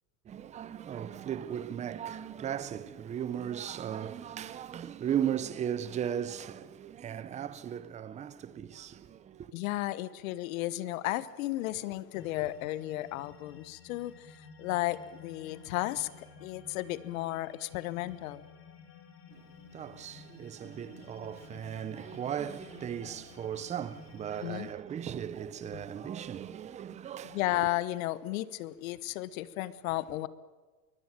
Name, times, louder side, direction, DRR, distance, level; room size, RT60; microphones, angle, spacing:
voice 1, 0.2-9.5 19.3-27.7, right 9 dB, 15° right, 0.7 m, -37 dB
voice 2, 9.5-16.1 16.4-18.5 24.4-24.7 25.7-25.8 27.3-30.3, left 16 dB, 60° left, 1.2 m, -34 dB
sound 1, 12.1-24.7, left 5 dB, 25° left, 2.8 m, -53 dB
22.5 x 18.0 x 8.9 m
supercardioid pair, 130°, 46 cm